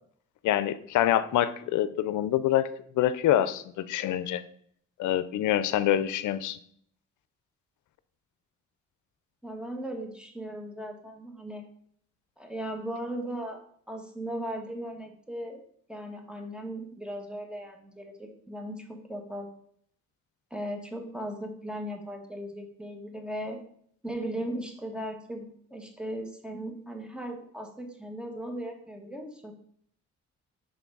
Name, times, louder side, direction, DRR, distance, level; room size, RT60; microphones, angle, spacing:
voice 1, 0.4-2.7 3.0-4.4 5.0-6.6, left 12 dB, 75° left, 14 dB, 0.6 m, -26 dB
voice 2, 9.4-11.6 12.4-13.6 13.9-15.6 15.9-19.5 20.5-23.6 24.0-29.5, right 1 dB, 5° right, 3 dB, 1.4 m, -37 dB
6.0 x 3.8 x 5.3 m, 0.64 s
cardioid pair, 90°, 30 cm